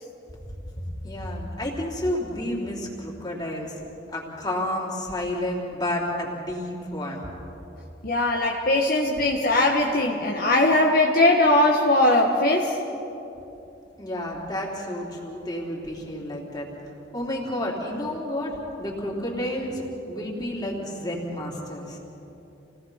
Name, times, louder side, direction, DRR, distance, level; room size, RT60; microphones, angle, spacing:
voice 1, 1.0-3.8 4.1-7.2 14.0-16.7 17.1-22.0, left 1 dB, 25° left, -3 dB, 3.8 m, -30 dB
voice 2, 8.0-12.8, left 2 dB, 50° left, -1 dB, 1.5 m, -20 dB
28.5 x 18.5 x 5.8 m, 3.0 s
head